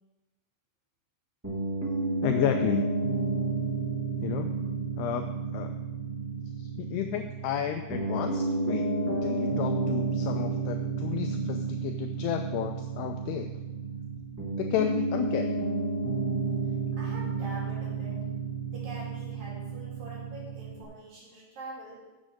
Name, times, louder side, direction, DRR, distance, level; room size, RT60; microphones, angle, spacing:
Piano, 1.4-20.8, right 4 dB, 10° right, 0.7 m, -31 dB
voice 1, 2.2-2.9 4.2-4.5 5.0-5.3 5.5-5.7 6.8-13.5 14.6-15.6, left 11 dB, 90° left, 6 dB, 2.3 m, -32 dB
voice 2, 16.9-18.2 18.7-22.0, right 2 dB, 50° right, -5 dB, 4.3 m, -44 dB
7.6 x 7.3 x 7.7 m, 1.1 s
omnidirectional pair, 5.3 m